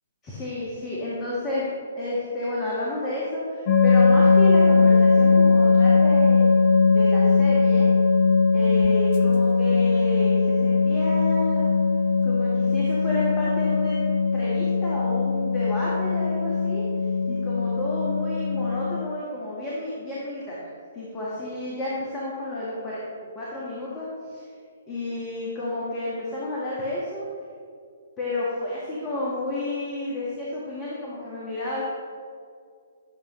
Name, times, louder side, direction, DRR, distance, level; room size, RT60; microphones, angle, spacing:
voice 1, 0.2-1.6 2.0-6.5 6.9-7.9 8.5-11.6 12.2-14.0 14.3-16.8 17.3-20.7 20.9-23.0 23.3-24.4 24.9-27.3 28.2-31.8, left 1 dB, 15° left, -7 dB, 1.5 m, -31 dB
sound 1, 3.7-19.0, left 4 dB, 40° left, 0.7 m, -20 dB
10.5 x 6.9 x 3.1 m, 2.2 s
figure-of-eight pair, 125°, 0 cm